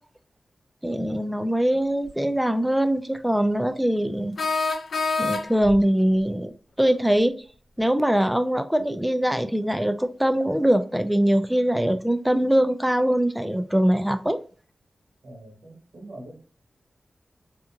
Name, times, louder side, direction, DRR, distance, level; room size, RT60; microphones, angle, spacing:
voice 1, 0.8-4.4 5.2-7.4 7.8-14.4, right 1 dB, 5° right, 0.4 m, -22 dB
sound 1, 2.1-2.2 4.4-5.8, left 3 dB, 85° left, 0.4 m, -26 dB
voice 2, 15.2-16.4, right 1 dB, 80° right, 1.4 m, -43 dB
2.8 x 2.5 x 2.4 m
wide cardioid pair, 65°, 0 cm